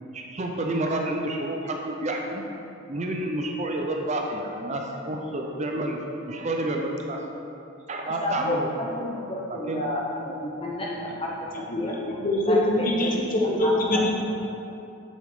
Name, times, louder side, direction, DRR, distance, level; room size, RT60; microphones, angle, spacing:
voice 1, 0.1-2.4 2.9-4.8 5.1-6.0 6.2-7.2 7.9-8.7 9.5-9.8, right 1 dB, 30° right, 1 dB, 0.6 m, -29 dB
voice 2, 8.2-11.9 12.5-13.2 13.6-13.7, left 1 dB, 25° left, -3 dB, 0.6 m, -31 dB
voice 3, 11.7-14.1, left 1 dB, 40° left, -2 dB, 1.1 m, -24 dB
7.4 x 7.2 x 3.7 m, 2.8 s
head